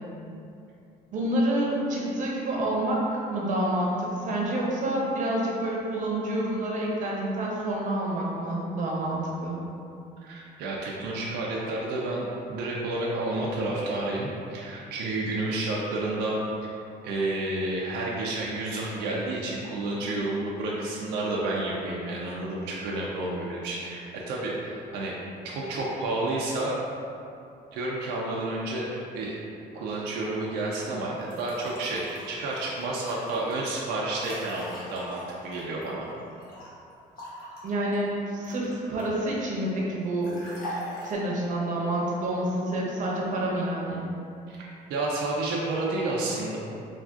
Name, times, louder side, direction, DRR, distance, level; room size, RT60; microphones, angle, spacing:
voice 1, 1.1-9.6 37.6-40.4 41.0-44.0, right 1 dB, 50° right, -3 dB, 0.7 m, -28 dB
voice 2, 10.2-16.4 17.0-25.1 25.4-26.7 27.7-29.4 29.7-36.1 44.5-46.6, right 2 dB, 85° right, -4 dB, 0.4 m, -30 dB
sound 1, 31.2-36.7 37.2-39.3 40.2-41.1, left 1 dB, 55° left, 0.9 m, -42 dB
3.4 x 2.3 x 2.4 m, 2.6 s
cardioid pair, 110°, 17 cm